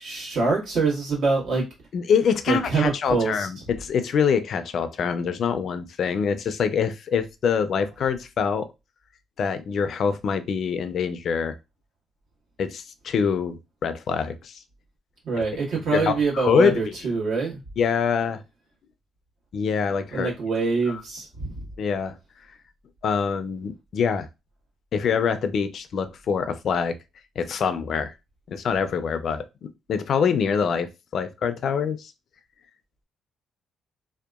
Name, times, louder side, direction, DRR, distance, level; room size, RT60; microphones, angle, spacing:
voice 1, 0.0-1.7 2.5-3.5 15.2-17.6 20.1-21.7, right 4 dB, 75° right, 1.3 m, -25 dB
voice 2, 1.9-8.7 9.4-11.6 12.6-14.6 15.9-17.1 17.8-18.4 19.5-20.3 20.9-21.0 21.8-22.2 23.0-24.3 24.9-27.0 27.4-28.1 28.5-32.1, left 6 dB, 60° left, 0.3 m, -25 dB
2.8 x 2.1 x 2.3 m
cardioid pair, 90°, 0 cm